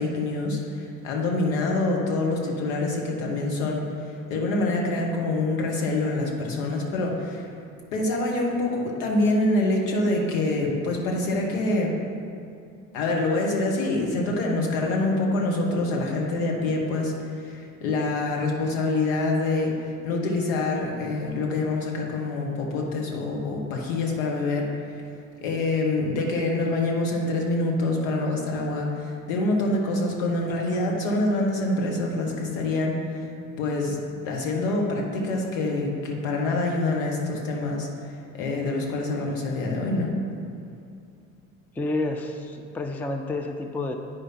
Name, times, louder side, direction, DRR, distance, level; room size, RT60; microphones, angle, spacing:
voice 1, 0.0-3.8 4.3-7.5 7.9-11.9 12.9-25.0 25.4-33.3 33.6-34.0 34.2-37.9 38.4-40.2, left 2 dB, 70° left, 0 dB, 1.5 m, -26 dB
voice 2, 41.7-43.9, left 2 dB, 5° left, 5 dB, 0.4 m, -29 dB
9.5 x 4.9 x 4.5 m, 2.5 s
hypercardioid pair, 65°, 42 cm